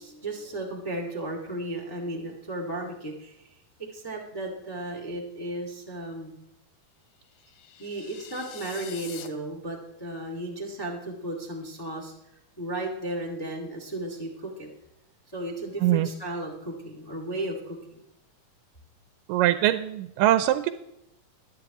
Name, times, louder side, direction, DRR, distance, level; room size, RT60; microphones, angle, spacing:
voice 1, 0.0-6.4 7.8-12.1 12.6-14.7 15.3-17.8, right 1 dB, 10° left, 0 dB, 1.2 m, -34 dB
sound 1, 7.2-9.3, left 9 dB, 70° left, 1.6 m, -45 dB
voice 2, 19.3-20.7, right 13 dB, 85° right, 11 dB, 2.2 m, -22 dB
22.5 x 9.0 x 3.0 m, 0.84 s
omnidirectional pair, 3.9 m